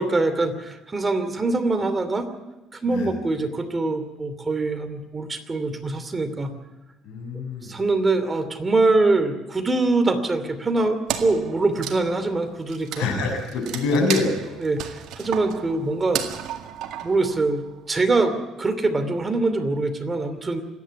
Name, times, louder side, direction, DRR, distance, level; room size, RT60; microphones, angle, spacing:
voice 1, 0.0-2.3 2.7-6.5 7.6-13.1 14.6-16.2 17.0-20.6, right 3 dB, 25° right, 9 dB, 2.7 m, -23 dB
voice 2, 7.0-7.7 12.9-14.6, left 3 dB, 85° left, 4 dB, 6.3 m, -25 dB
Wood, 11.1-17.8, right 10 dB, 75° right, 1.9 m, -34 dB
26.5 x 11.0 x 9.6 m, 1.1 s
cardioid pair, 105°, 0 cm